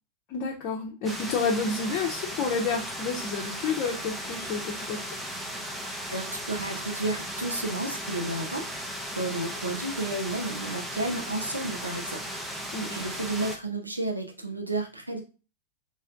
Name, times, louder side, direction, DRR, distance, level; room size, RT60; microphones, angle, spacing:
voice 1, 0.3-5.0 12.7-13.0, left 4 dB, 40° left, -2 dB, 0.8 m, -30 dB
sound 1, 1.0-13.6, equal, 5° right, 0.7 m, -36 dB
voice 2, 6.1-12.2 12.5-15.2, right 2 dB, 85° right, 2 dB, 0.9 m, -32 dB
4.3 x 3.1 x 2.5 m, 0.32 s
figure-of-eight pair, 90°, 0 cm